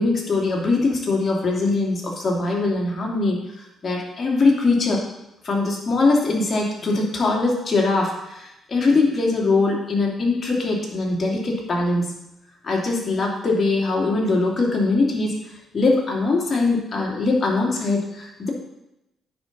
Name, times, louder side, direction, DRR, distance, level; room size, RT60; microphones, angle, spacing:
voice 1, 0.0-3.4 3.8-5.0 5.4-12.1 12.6-15.3 15.7-18.5, left 3 dB, 40° left, -2 dB, 2.5 m, -21 dB
9.4 x 4.1 x 5.9 m, 0.89 s
cardioid pair, 90°, 0 cm